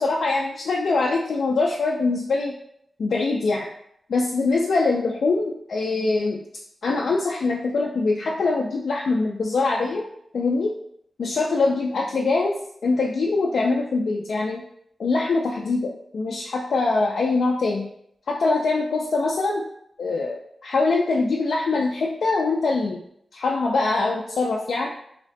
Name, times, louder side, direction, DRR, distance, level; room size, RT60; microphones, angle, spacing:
voice 1, 0.0-2.5 3.0-3.7 4.1-6.4 6.8-10.1 10.3-10.7 11.2-14.6 15.0-17.9 18.3-19.7 20.0-23.0 23.3-24.9, left 3 dB, 75° left, -2 dB, 0.3 m, -23 dB
2.8 x 2.1 x 4.0 m, 0.72 s
wide cardioid pair, 120°, 0 cm